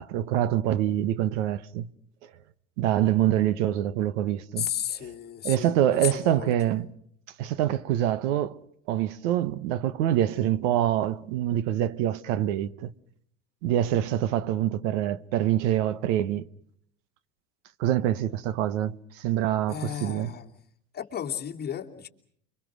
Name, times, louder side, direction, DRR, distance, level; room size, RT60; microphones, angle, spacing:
voice 1, 0.0-1.9 2.8-4.7 5.4-6.9 7.4-8.6 8.9-12.9 13.6-16.5 17.8-20.3, right 12 dB, 85° right, 1.2 m, -25 dB
voice 2, 4.6-6.5 19.7-20.6 20.9-22.1, left 9 dB, 25° left, 2.7 m, -34 dB
29.5 x 24.5 x 6.3 m
cardioid pair, 140°, 35 cm